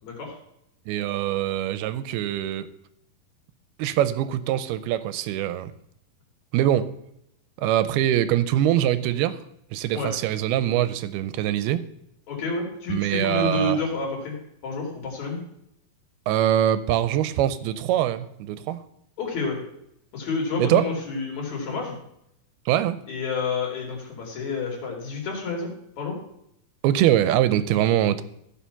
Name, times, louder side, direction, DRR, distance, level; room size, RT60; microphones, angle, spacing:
voice 1, 0.0-0.4 9.9-10.1 12.3-14.3 14.6-15.4 19.2-19.6 20.1-22.0 23.1-25.7 26.0-26.2, left 3 dB, 50° left, -1 dB, 3.7 m, -29 dB
voice 2, 0.9-2.7 3.8-5.7 6.5-6.9 7.6-9.4 9.7-11.8 12.9-13.8 16.3-18.8 20.6-20.8 22.7-23.0 26.8-28.2, right 12 dB, 85° right, 13 dB, 2.6 m, -23 dB
14.5 x 5.8 x 5.7 m, 0.77 s
omnidirectional pair, 4.4 m